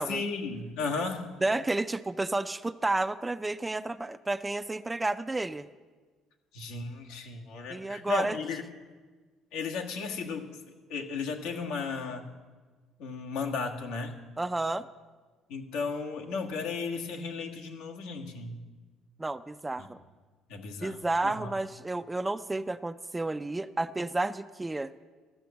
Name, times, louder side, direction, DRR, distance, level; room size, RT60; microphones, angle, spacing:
voice 1, 0.1-1.3 6.5-8.6 9.5-10.5 10.9-12.3 13.0-14.1 15.5-18.6 19.8-19.9 20.5-21.0 21.2-21.5, left 4 dB, 90° left, 1 dB, 1.5 m, -34 dB
voice 2, 1.4-5.7 7.7-8.4 14.4-14.9 19.2-20.0 20.8-24.9, right 2 dB, 10° right, 13 dB, 0.3 m, -31 dB
14.0 x 7.7 x 7.0 m, 1.4 s
cardioid pair, 135°, 0 cm